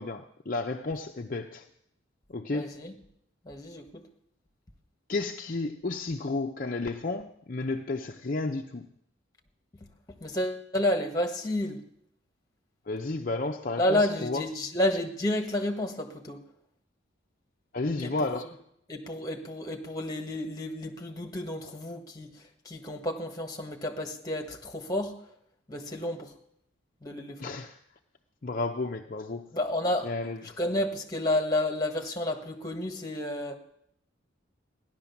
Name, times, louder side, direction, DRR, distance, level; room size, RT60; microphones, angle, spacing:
voice 1, 0.0-1.7 2.3-2.8 5.1-8.8 12.9-14.5 17.7-18.5 27.4-27.8 28.4-29.5 30.0-30.6, left 3 dB, 40° left, 0.6 m, -32 dB
voice 2, 2.5-2.9 3.4-4.0 10.2-11.8 13.8-16.4 18.0-18.1 18.9-22.3 22.6-25.2 25.7-26.3 27.0-27.5 29.5-30.1 30.6-33.6, left 1 dB, 20° left, 1.6 m, -30 dB
15.5 x 11.0 x 7.1 m
head